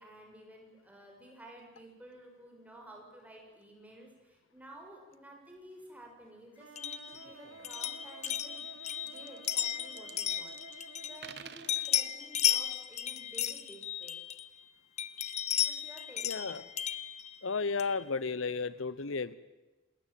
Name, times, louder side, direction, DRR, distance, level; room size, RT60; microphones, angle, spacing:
voice 1, 0.0-8.6 9.0-14.2 15.7-16.7, right 1 dB, 5° right, 0 dB, 6.1 m, -53 dB
sound 1, 6.6-12.4, right 4 dB, 80° right, 2.0 m, -53 dB
sound 2, 6.8-11.4 11.7-14.6 15.0-18.0, left 10 dB, 35° left, 0.9 m, -34 dB
sound 3, 7.8-7.9 8.1-8.4 8.9-10.8 11.1-11.9, right 8 dB, 55° right, 1.3 m, -50 dB
voice 2, 16.2-16.6 17.4-19.3, left 4 dB, 80° left, 17 dB, 0.9 m, -33 dB
27.5 x 20.0 x 9.2 m, 1.1 s
head